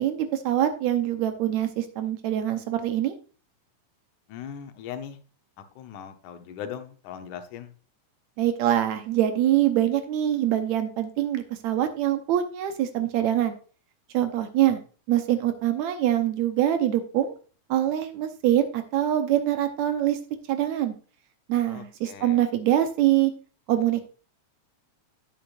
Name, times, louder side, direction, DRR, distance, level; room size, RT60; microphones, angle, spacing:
voice 1, 0.0-3.2 8.4-13.5 14.1-14.8 15.1-17.4 17.7-20.2 20.5-20.9 21.5-23.3 23.7-24.0, right 12 dB, 75° right, 8 dB, 2.0 m, -24 dB
voice 2, 4.3-5.2 5.6-7.7 21.7-22.4, left 8 dB, 80° left, 7 dB, 2.3 m, -39 dB
9.3 x 8.7 x 2.4 m, 0.38 s
omnidirectional pair, 3.5 m